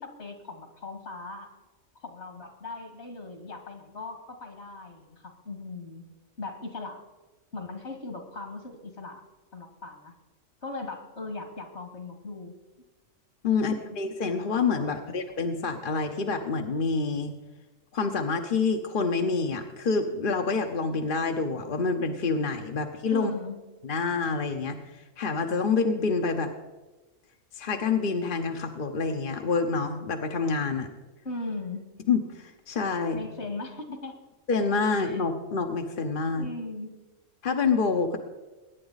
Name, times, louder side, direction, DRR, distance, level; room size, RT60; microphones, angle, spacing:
voice 1, 0.0-1.5 2.0-6.1 6.4-7.0 7.5-9.2 9.5-10.1 10.6-12.5 14.7-15.1 23.1-23.6 31.2-31.8 33.1-34.2 35.0-35.2 36.3-37.0, left 3 dB, 60° left, 5 dB, 2.2 m, -39 dB
voice 2, 13.4-17.3 17.9-23.3 23.8-26.5 27.6-30.9 32.1-33.2 34.5-36.5 37.4-38.2, left 4 dB, 45° left, 4 dB, 1.0 m, -27 dB
22.0 x 9.7 x 4.0 m, 1.2 s
omnidirectional pair, 1.3 m